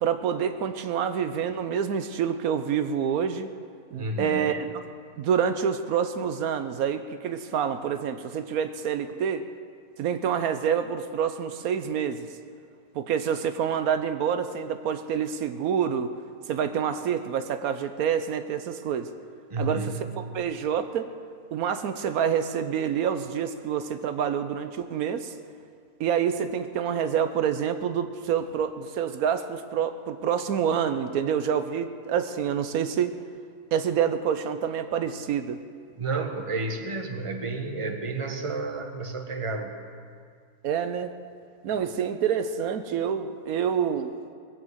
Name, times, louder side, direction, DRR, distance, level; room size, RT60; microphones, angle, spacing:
voice 1, 0.0-3.5 3.9-4.8 5.2-9.5 10.0-12.3 12.9-16.1 16.5-19.1 19.6-21.1 21.5-25.3 26.0-33.2 33.7-35.6 40.6-41.1 41.6-44.1, right 8 dB, 80° right, 9 dB, 1.2 m, -27 dB
voice 2, 4.0-4.5 19.5-20.0 36.0-39.7, right 3 dB, 25° right, 4 dB, 1.1 m, -31 dB
20.5 x 7.6 x 7.9 m, 2.2 s
omnidirectional pair, 1.5 m